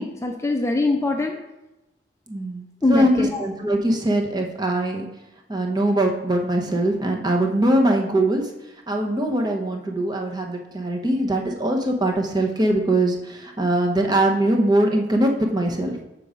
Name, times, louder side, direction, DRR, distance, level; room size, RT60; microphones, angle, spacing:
voice 1, 0.0-1.4 2.8-3.4, left 2 dB, 15° left, 3 dB, 0.5 m, -22 dB
voice 2, 2.3-5.1 5.5-8.5 8.9-16.0, right 1 dB, 25° right, 1 dB, 0.9 m, -22 dB
6.8 x 4.6 x 5.1 m, 0.96 s
head